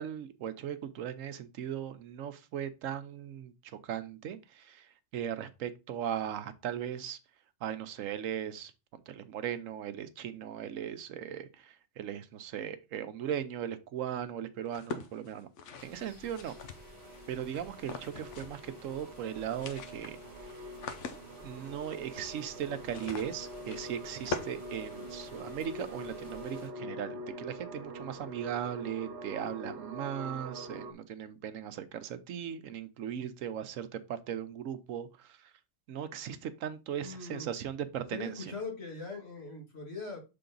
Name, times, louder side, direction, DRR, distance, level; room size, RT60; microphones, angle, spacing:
voice 1, 0.0-3.5 3.8-7.2 7.6-8.7 9.1-15.5 15.8-16.6 17.3-20.2 21.4-35.5 35.9-38.5, right 9 dB, 90° right, 1.1 m, -38 dB
sound 1, 14.7-17.2 17.8-18.7 18.9-19.0 19.3-25.5, left 4 dB, 70° left, 1.0 m, -43 dB
sound 2, 15.8-26.7, equal, 20° left, 2.3 m, -55 dB
sound 3, 16.5-30.9, right 1 dB, 55° right, 1.2 m, -45 dB
voice 2, 37.0-37.5 38.1-40.2, left 4 dB, 55° left, 2.3 m, -41 dB
6.8 x 3.7 x 3.9 m
omnidirectional pair, 1.3 m